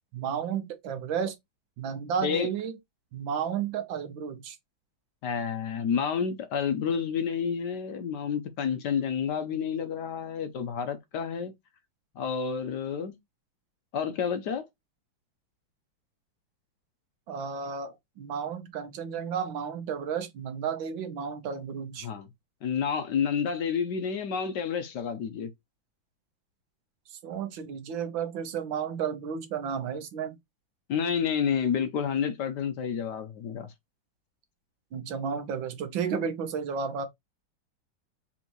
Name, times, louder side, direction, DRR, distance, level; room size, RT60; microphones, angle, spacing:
voice 1, 0.1-1.3 1.8-2.8 3.1-4.6 17.3-22.1 27.1-30.4 34.9-37.1, right 7 dB, 80° right, 1.6 m, -32 dB
voice 2, 5.2-11.5 12.2-13.1 13.9-14.7 22.0-22.3 22.6-25.5 30.9-33.7, left 7 dB, 70° left, 1.3 m, -29 dB
4.4 x 3.6 x 2.9 m
omnidirectional pair, 2.1 m